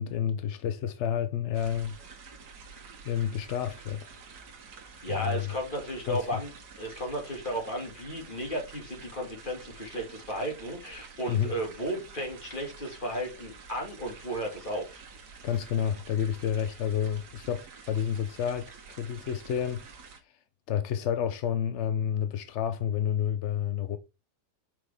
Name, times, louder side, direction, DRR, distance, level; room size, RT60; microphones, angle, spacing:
voice 1, 0.0-2.0 3.0-4.1 5.1-5.4 6.1-6.4 11.3-11.5 15.4-20.1 20.7-24.0, left 9 dB, 70° left, 0.7 m, -30 dB
sound 1, 1.5-20.2, right 5 dB, 70° right, 1.7 m, -49 dB
voice 2, 5.0-6.5 6.8-15.0, equal, 30° left, 2.3 m, -34 dB
5.9 x 5.8 x 3.4 m
omnidirectional pair, 1.8 m